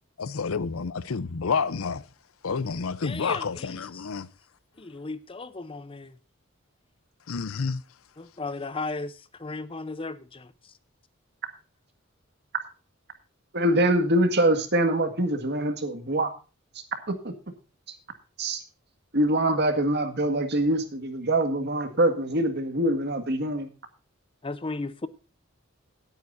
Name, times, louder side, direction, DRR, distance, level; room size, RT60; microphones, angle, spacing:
voice 1, 0.2-2.0 2.4-4.3 7.3-7.8, left 5 dB, 85° left, 0.6 m, -29 dB
voice 2, 3.0-4.1 4.8-6.1 8.2-10.5 20.3-20.4 24.4-25.1, left 3 dB, 25° left, 0.7 m, -35 dB
voice 3, 13.5-16.3 17.1-17.3 18.4-18.6 19.1-23.7, right 1 dB, 55° right, 1.8 m, -24 dB
18.0 x 9.0 x 2.6 m
head